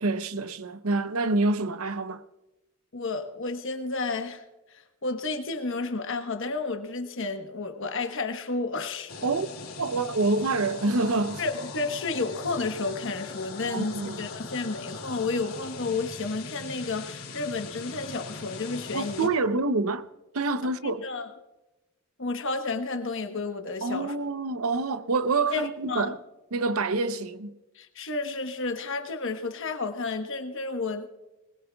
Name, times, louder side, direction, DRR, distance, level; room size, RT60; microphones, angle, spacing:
voice 1, 0.0-2.2 9.2-9.5 9.8-11.4 13.7-14.3 18.9-20.1 20.3-21.0 23.8-26.2 26.5-27.6, right 3 dB, 75° right, 0.7 m, -27 dB
voice 2, 2.9-4.4 4.7-9.1 11.4-19.3 20.8-21.3 22.2-24.1 25.5-26.1 27.7-31.2, left 3 dB, 60° left, 1.1 m, -31 dB
sound 1, 9.1-19.3, left 3 dB, 75° left, 2.6 m, -40 dB
21.0 x 20.0 x 2.3 m
head